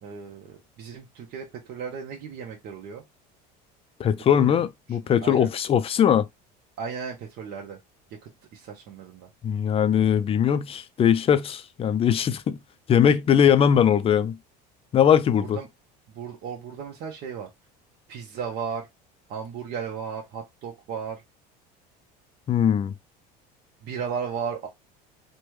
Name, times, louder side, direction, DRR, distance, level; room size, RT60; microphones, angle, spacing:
voice 1, 0.0-3.0 4.4-4.6 5.2-5.5 6.8-7.8 8.5-9.3 15.4-15.7 16.1-17.5 18.1-18.9 19.3-21.2 23.8-24.7, right 6 dB, 55° right, 0.8 m, -35 dB
voice 2, 4.0-6.3 9.4-12.6 12.9-14.4 14.9-15.6 22.5-22.9, left 8 dB, 30° left, 0.4 m, -20 dB
3.3 x 2.2 x 3.0 m
supercardioid pair, 110°, 21 cm